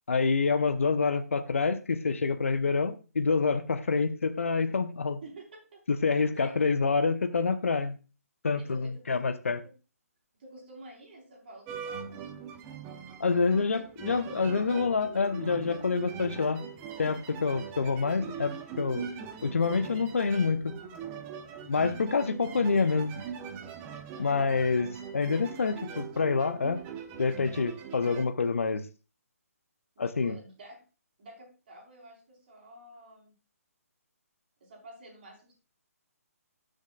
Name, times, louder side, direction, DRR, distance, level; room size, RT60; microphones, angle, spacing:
voice 1, 0.1-5.2 5.9-8.0 8.4-9.6 13.2-16.6 17.0-19.1 19.4-20.7 21.7-23.2 24.2-26.8 27.2-28.9 30.0-30.3, left 4 dB, 55° left, 0.9 m, -27 dB
voice 2, 5.2-5.8 6.1-6.7 8.6-9.2 9.6-9.7 10.4-12.3 24.2-24.7 30.0-30.8 31.2-33.3 34.6-35.5, right 1 dB, 40° right, 4.3 m, -50 dB
sound 1, 11.7-28.2, right 7 dB, 20° right, 0.9 m, -42 dB
19.0 x 6.5 x 2.4 m
figure-of-eight pair, 135°, 8 cm